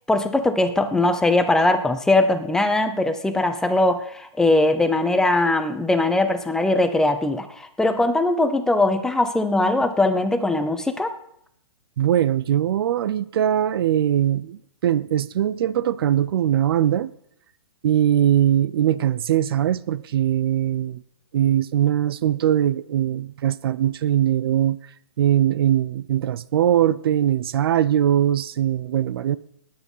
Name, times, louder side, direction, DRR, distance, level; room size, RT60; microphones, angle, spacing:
voice 1, 0.1-11.1, left 2 dB, 5° left, 0.7 m, -20 dB
voice 2, 12.0-17.1 17.8-21.0 21.3-24.8 25.2-29.4, right 11 dB, 55° right, 0.6 m, -21 dB
18.0 x 9.7 x 5.6 m
hypercardioid pair, 155°, 15 cm